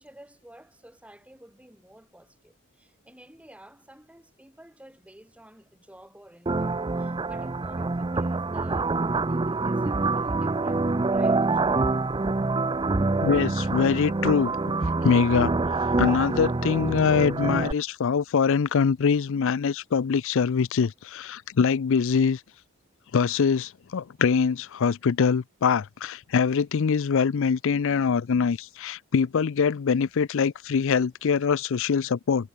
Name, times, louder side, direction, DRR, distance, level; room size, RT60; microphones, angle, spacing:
voice 1, 0.0-11.8, right 1 dB, 5° right, 4.1 m, -51 dB
sound 1, 6.5-17.7, right 3 dB, 20° right, 0.5 m, -26 dB
voice 2, 13.2-14.5 15.0-15.5 16.0-22.4 23.1-32.5, left 6 dB, 65° left, 0.4 m, -23 dB
head